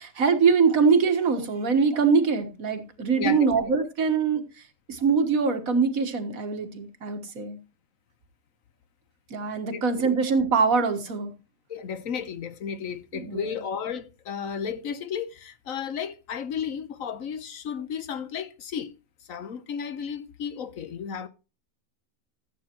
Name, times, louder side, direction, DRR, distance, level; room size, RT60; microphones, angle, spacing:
voice 1, 0.0-4.4 4.9-7.6 9.3-11.3 13.1-13.5, right 5 dB, 75° right, 1.9 m, -23 dB
voice 2, 3.2-3.7 9.6-9.8 11.7-18.9 19.2-21.3, left 7 dB, 75° left, 1.3 m, -33 dB
14.5 x 8.5 x 3.0 m
omnidirectional pair, 1.5 m